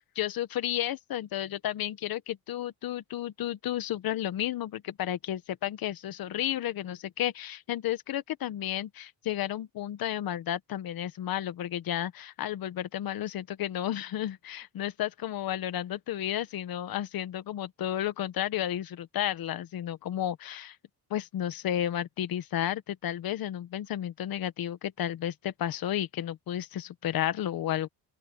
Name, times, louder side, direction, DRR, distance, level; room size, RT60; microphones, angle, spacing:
voice 1, 0.1-20.8 21.1-27.9, left 11 dB, 60° left, 1.4 m, -32 dB
open air
cardioid pair, 165°, 39 cm